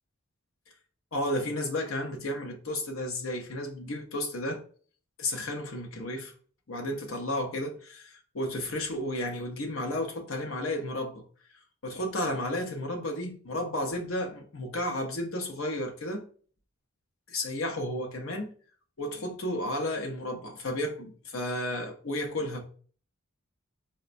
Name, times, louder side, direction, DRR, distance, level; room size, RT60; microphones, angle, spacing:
voice 1, 1.1-4.6 5.2-6.3 6.7-7.8 8.3-11.2 11.8-16.2 17.3-18.5 19.0-22.6, left 1 dB, 70° left, 0.7 m, -32 dB
4.0 x 2.2 x 2.5 m
head